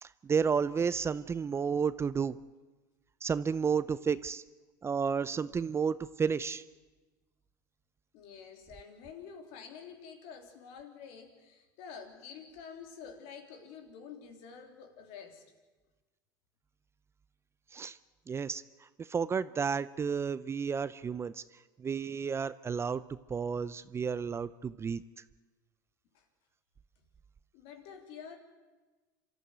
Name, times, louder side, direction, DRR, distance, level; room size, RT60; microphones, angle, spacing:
voice 1, 0.0-2.4 3.2-4.4 4.8-6.6 17.7-18.0 18.3-18.6 19.0-21.4 21.8-23.0 23.3-25.0, right 6 dB, 25° right, 16 dB, 0.6 m, -31 dB
voice 2, 8.1-15.4 26.1-26.2 27.0-27.1 27.5-28.4, left 6 dB, 70° left, 5 dB, 3.3 m, -48 dB
27.0 x 13.5 x 9.4 m, 1.3 s
hypercardioid pair, 90°, 10 cm